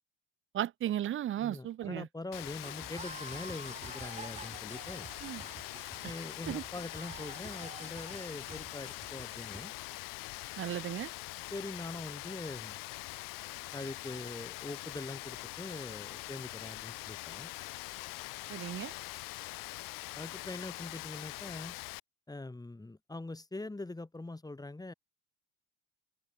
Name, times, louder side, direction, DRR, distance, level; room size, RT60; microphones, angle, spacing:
voice 1, 0.5-2.1 5.2-5.4 6.5-6.6 10.6-11.1 18.5-18.9, right 12 dB, 35° right, 0.7 m, -35 dB
voice 2, 1.4-5.1 6.0-9.7 11.5-12.8 13.7-17.5 20.1-21.7 22.3-24.9, left 2 dB, 10° left, 2.2 m, -43 dB
Rain, 2.3-22.0, left 22 dB, 60° left, 2.5 m, -43 dB
sound 1, 2.6-9.7, right 4 dB, 20° right, 3.3 m, -49 dB
hypercardioid pair, 65°, 37 cm